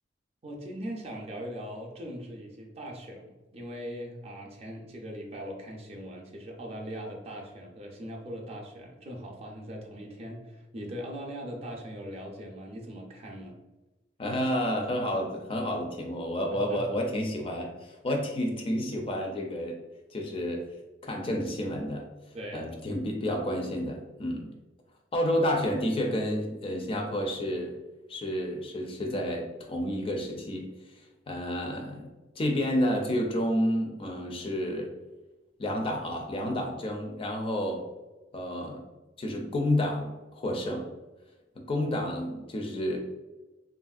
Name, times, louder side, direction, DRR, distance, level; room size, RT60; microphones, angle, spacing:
voice 1, 0.4-13.6 16.5-16.8 22.3-22.7, equal, 35° right, 0 dB, 0.5 m, -40 dB
voice 2, 14.2-19.8 20.1-20.7 21.0-22.1 22.5-24.4 25.1-27.7 28.1-30.7 31.3-32.1 32.4-34.9 35.6-37.9 38.3-38.8 39.2-40.9 41.6-43.0, left 1 dB, 30° left, 2 dB, 0.4 m, -30 dB
2.9 x 2.5 x 2.3 m, 1.1 s
head